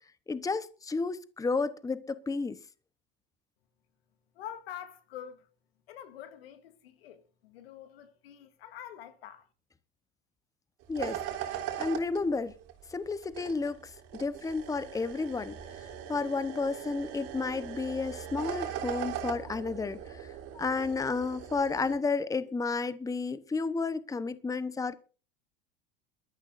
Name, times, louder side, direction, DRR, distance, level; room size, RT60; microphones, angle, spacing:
voice 1, 0.3-2.6 10.9-12.5 12.9-24.9, left 4 dB, 10° left, 1.0 m, -32 dB
voice 2, 4.3-5.5 5.9-9.5, left 10 dB, 90° left, 2.1 m, -46 dB
sound 1, 10.8-22.0, right 10 dB, 55° right, 3.6 m, -40 dB
22.0 x 13.5 x 2.6 m
supercardioid pair, 110°, 29 cm